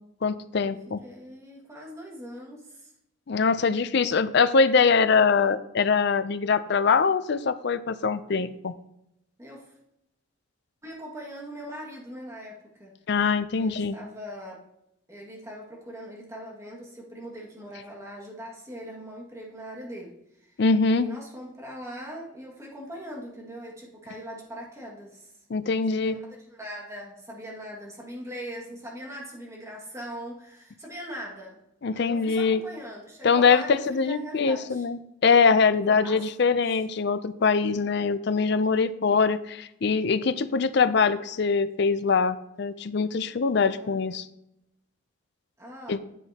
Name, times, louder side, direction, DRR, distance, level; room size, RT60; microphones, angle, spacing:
voice 1, 0.2-1.0 3.3-8.7 13.1-13.9 20.6-21.1 25.5-26.2 31.8-32.6 33.2-44.3 45.9-46.0, left 5 dB, 55° left, 13 dB, 0.4 m, -23 dB
voice 2, 1.0-2.9 9.4-9.8 10.8-13.0 13.6-14.6 15.1-20.6 20.8-25.4 25.9-31.6 31.9-34.9 36.0-36.8 38.5-38.7 40.1-40.4 43.8-44.1 45.6-46.0, equal, 15° right, -3 dB, 1.9 m, -41 dB
9.9 x 7.7 x 2.9 m, 0.80 s
head